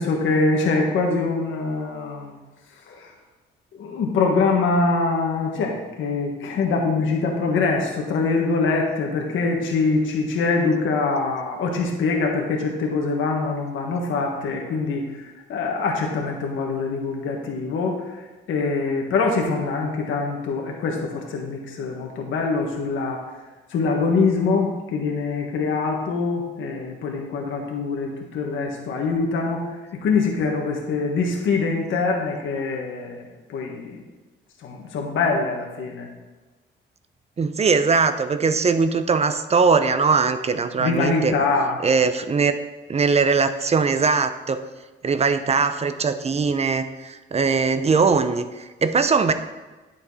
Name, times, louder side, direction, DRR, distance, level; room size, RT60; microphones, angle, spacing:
voice 1, 0.0-2.4 2.9-3.1 3.7-23.2 23.7-33.2 33.5-34.0 34.6-36.1 40.8-41.8, left 4 dB, 75° left, 0 dB, 1.6 m, -24 dB
voice 2, 37.4-41.4 41.8-42.5 42.9-44.6 45.0-49.3, right 5 dB, 30° right, 10 dB, 0.7 m, -20 dB
9.4 x 7.1 x 4.2 m, 1.2 s
cardioid pair, 90°, 20 cm